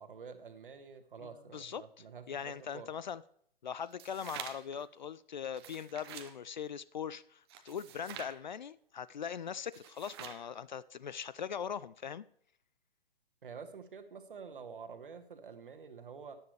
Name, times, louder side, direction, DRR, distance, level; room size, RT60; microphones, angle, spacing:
voice 1, 0.0-2.9 13.4-16.4, right 5 dB, 60° right, 1.5 m, -48 dB
voice 2, 1.5-1.8 2.3-3.2 3.6-12.2, left 7 dB, 50° left, 0.4 m, -41 dB
sound 1, 3.8-4.8 5.4-6.3 7.5-8.4 9.6-10.5, right 10 dB, 25° right, 0.8 m, -47 dB
13.5 x 9.8 x 3.3 m
figure-of-eight pair, 130°, 30 cm